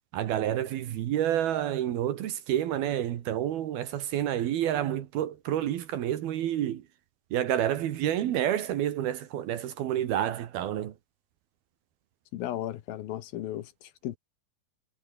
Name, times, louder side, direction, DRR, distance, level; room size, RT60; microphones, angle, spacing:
voice 1, 0.1-6.8 7.3-10.9, right 11 dB, 75° right, 3.4 m, -29 dB
voice 2, 12.3-14.2, left 13 dB, 75° left, 2.9 m, -35 dB
omnidirectional pair, 4.4 m